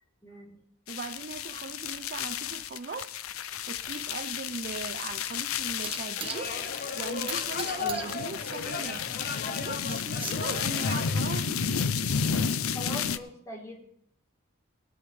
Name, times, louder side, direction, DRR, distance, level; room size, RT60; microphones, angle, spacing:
voice 1, 0.2-0.6 12.7-13.9, left 1 dB, 15° left, 3.3 m, -42 dB
sound 1, 0.9-13.2, left 6 dB, 85° left, 0.6 m, -32 dB
voice 2, 0.9-3.2 3.7-6.6 6.9-9.1 9.5-11.9, right 4 dB, 45° right, 0.5 m, -39 dB
sound 2, 3.3-11.2, right 6 dB, 25° right, 1.2 m, -43 dB
sound 3, 6.2-11.1, left 4 dB, 45° left, 1.0 m, -36 dB
18.5 x 10.5 x 3.3 m
head